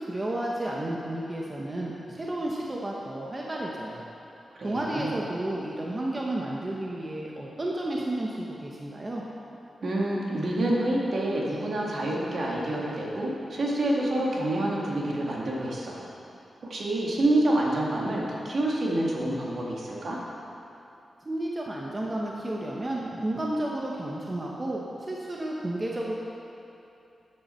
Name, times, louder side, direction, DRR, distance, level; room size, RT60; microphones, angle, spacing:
voice 1, 0.0-4.0 4.6-9.2 21.2-26.1, right 1 dB, 30° right, -3 dB, 1.1 m, -32 dB
voice 2, 4.6-5.1 9.8-16.0 16.7-20.2, right 1 dB, 60° right, -3 dB, 2.1 m, -27 dB
12.5 x 8.9 x 4.5 m, 2.8 s
wide cardioid pair, 95°, 0 cm